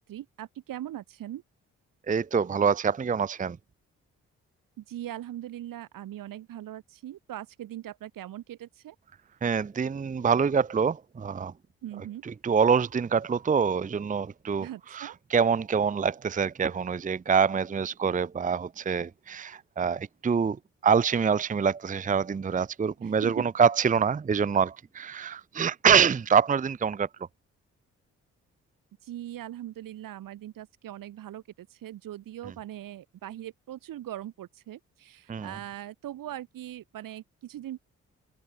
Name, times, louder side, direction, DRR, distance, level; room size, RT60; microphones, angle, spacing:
voice 1, 0.0-1.4 4.8-9.0 11.8-12.2 14.6-15.1 23.0-23.5 29.0-37.8, right 12 dB, 75° right, 2.3 m, -40 dB
voice 2, 2.1-3.6 9.4-11.5 12.4-14.7 14.9-20.6 20.8-27.1 35.3-35.6, right 6 dB, 25° right, 0.6 m, -25 dB
hypercardioid pair, 45°, 34 cm